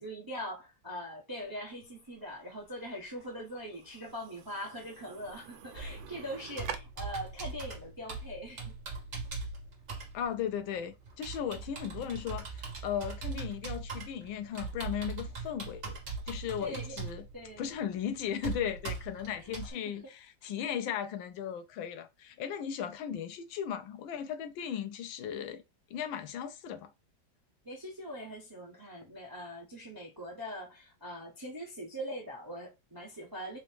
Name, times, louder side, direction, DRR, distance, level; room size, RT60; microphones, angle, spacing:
voice 1, 0.0-8.7 16.6-17.0 17.3-17.6 19.7-19.9 27.6-33.6, equal, 25° right, 0.5 m, -42 dB
sound 1, 1.4-6.8, right 9 dB, 80° right, 1.3 m, -48 dB
Computer keyboard, 5.7-19.7, right 4 dB, 40° right, 1.4 m, -41 dB
voice 2, 10.1-15.9 16.3-17.3 17.6-25.6 25.9-26.9, left 8 dB, 80° left, 1.4 m, -36 dB
4.0 x 2.7 x 3.3 m
omnidirectional pair, 2.1 m